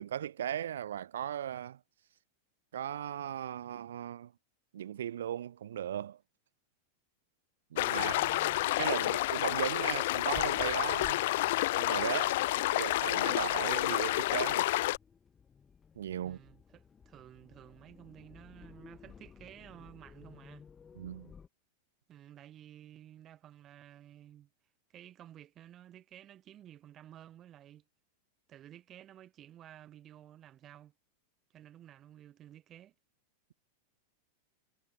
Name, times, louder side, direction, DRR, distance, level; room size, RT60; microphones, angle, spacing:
voice 1, 0.0-1.8 2.7-4.3 4.7-6.2 7.7-8.1 8.8-11.2 11.7-14.7 16.0-16.4 21.0-21.3, right 10 dB, 60° right, 0.5 m, -37 dB
sound 1, 7.8-15.0, left 17 dB, 55° left, 0.6 m, -30 dB
voice 2, 8.0-8.6 9.0-9.2 16.2-20.7 22.1-24.5 24.9-27.8 28.5-30.9 31.5-32.9, right 11 dB, 30° right, 4.1 m, -53 dB
sound 2, 10.3-21.5, left 6 dB, 20° left, 6.6 m, -56 dB
figure-of-eight pair, 90°, 0 cm